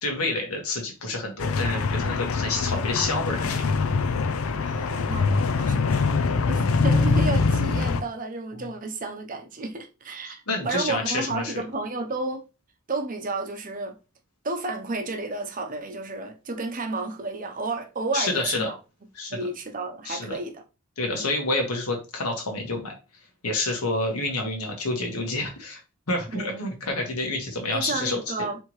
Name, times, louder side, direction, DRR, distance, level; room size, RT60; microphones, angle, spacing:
voice 1, 0.0-3.7 8.6-8.7 10.3-11.5 18.1-18.7 19.1-19.5 20.0-20.4 21.0-22.9 23.4-25.8 26.1-28.2, left 2 dB, 90° left, 1.6 m, -28 dB
sound 1, 1.4-8.0, left 4 dB, 70° left, 0.5 m, -23 dB
voice 2, 4.6-12.4 12.9-14.0 14.4-18.8 19.3-20.6 21.1-21.3 26.3-26.7 27.7-28.6, right 3 dB, 40° right, 0.8 m, -32 dB
4.6 x 3.5 x 3.1 m
head